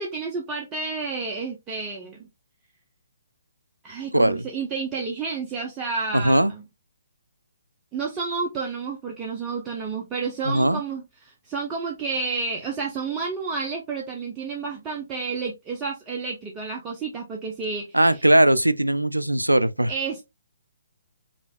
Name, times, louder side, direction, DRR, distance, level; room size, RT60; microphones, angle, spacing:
voice 1, 0.0-2.3 3.8-6.6 7.9-18.0 19.9-20.2, right 4 dB, 20° right, 0.7 m, -30 dB
voice 2, 4.1-4.4 6.1-6.5 10.4-10.8 17.9-19.9, right 1 dB, 90° right, 0.3 m, -19 dB
5.0 x 2.6 x 2.3 m
figure-of-eight pair, 130°, 0 cm